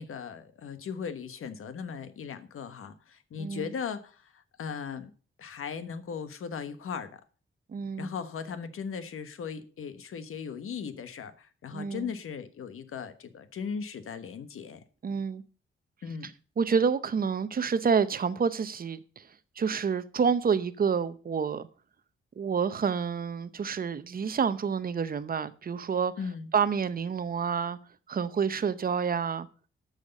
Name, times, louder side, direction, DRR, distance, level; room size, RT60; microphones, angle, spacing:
voice 1, 0.0-5.1 5.4-7.2 8.0-14.8 16.0-16.3 26.2-26.5, left 6 dB, 85° left, 1.3 m, -38 dB
voice 2, 3.4-3.7 7.7-8.1 11.7-12.1 15.0-15.4 16.6-19.3 19.6-21.7 22.4-26.1 26.5-27.8 28.1-29.5, right 6 dB, 45° right, 0.8 m, -28 dB
12.5 x 6.5 x 5.3 m
wide cardioid pair, 155°, 21 cm